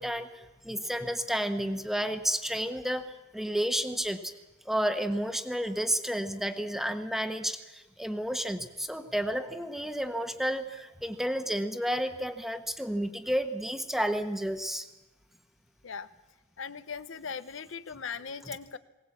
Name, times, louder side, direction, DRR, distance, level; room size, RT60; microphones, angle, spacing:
voice 1, 0.0-4.3 4.6-14.9, equal, ahead, 8 dB, 1.1 m, -31 dB
voice 2, 16.6-18.8, left 6 dB, 65° left, 13 dB, 0.7 m, -39 dB
21.0 x 18.0 x 8.4 m, 1.1 s
head